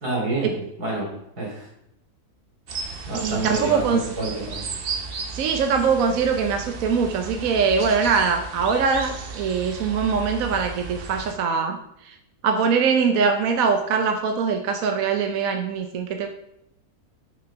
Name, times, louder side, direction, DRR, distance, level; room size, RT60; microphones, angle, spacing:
voice 1, 0.0-0.5 0.8-1.7 3.1-4.6, right 2 dB, 85° right, -2 dB, 3.5 m, -28 dB
sound 1, 2.7-11.3, right 5 dB, 45° right, 0.9 m, -34 dB
voice 2, 3.1-4.0 5.3-12.2 12.4-16.3, right 5 dB, 65° right, 5 dB, 1.1 m, -22 dB
6.4 x 6.3 x 5.8 m, 0.80 s
omnidirectional pair, 1.6 m